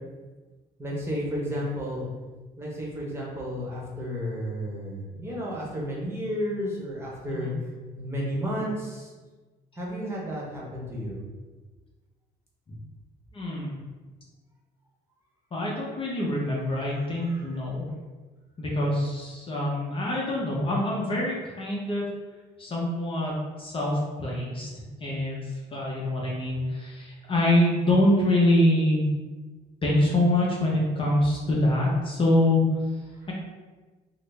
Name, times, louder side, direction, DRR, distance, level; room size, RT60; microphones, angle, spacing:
voice 1, 0.8-2.1 2.6-7.5 7.9-9.1 9.8-11.2 16.9-17.5, equal, 15° right, -4 dB, 1.0 m, -32 dB
voice 2, 13.3-13.7 15.5-17.8 18.6-22.1 22.6-29.0 29.8-32.6, left 1 dB, 30° left, -3 dB, 0.7 m, -25 dB
3.8 x 2.0 x 3.3 m, 1.3 s
cardioid pair, 110°, 17 cm